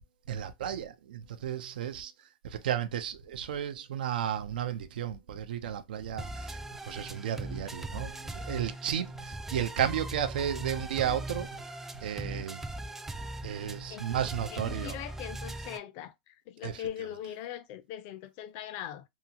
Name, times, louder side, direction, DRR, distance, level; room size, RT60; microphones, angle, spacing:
voice 1, 0.3-2.1 2.4-6.6 6.9-11.5 12.0-12.6 13.4-15.0 16.6-16.9, right 9 dB, 90° right, 0.5 m, -33 dB
sound 1, 6.2-15.8, right 1 dB, 5° right, 0.3 m, -40 dB
voice 2, 14.5-16.1 16.5-19.0, left 11 dB, 50° left, 0.5 m, -40 dB
2.8 x 2.4 x 2.7 m
supercardioid pair, 130°, 5 cm